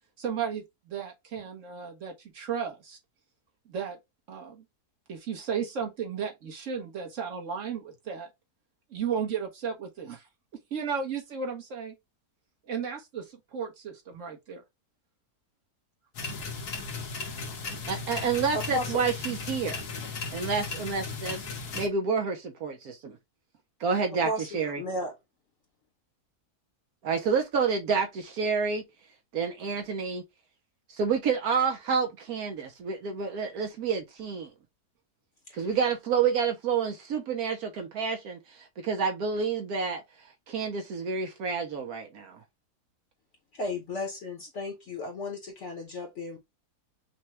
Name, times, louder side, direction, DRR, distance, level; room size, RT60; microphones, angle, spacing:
voice 1, 0.2-3.0 3.7-4.0 4.3-4.6 5.1-8.3 8.9-10.2 10.7-11.9 12.7-14.6, right 7 dB, 55° right, 1.3 m, -34 dB
sound 1, 16.1-21.9, left 4 dB, 80° left, 1.6 m, -36 dB
voice 2, 17.9-19.8 20.3-21.5 21.7-23.1 23.8-24.8 27.0-28.8 29.3-30.2 30.9-34.5 35.5-40.0 40.5-42.4, right 5 dB, 70° right, 1.2 m, -29 dB
voice 3, 18.5-19.0 24.2-24.5 24.8-25.1 35.5-35.6 43.5-46.4, left 2 dB, 55° left, 1.1 m, -34 dB
5.7 x 2.2 x 2.9 m
omnidirectional pair, 1.7 m